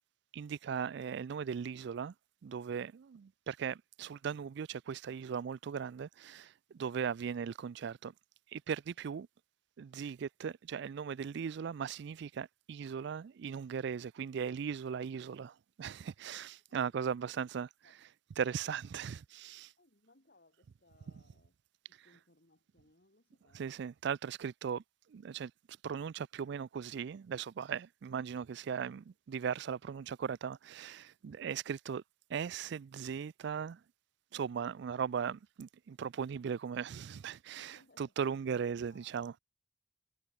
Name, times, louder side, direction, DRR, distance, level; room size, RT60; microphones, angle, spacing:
voice 1, 0.3-2.1 2.4-8.1 8.5-9.3 9.8-17.7 18.4-19.7 23.5-24.8 25.1-25.5 25.8-32.0 32.3-33.8 34.3-39.3, right 7 dB, 65° right, 0.4 m, -38 dB
voice 2, 16.7-17.1 17.8-17.9 19.8-21.6 21.9-23.8 37.5-38.1 38.9-39.2, left 2 dB, 55° left, 4.4 m, -67 dB
head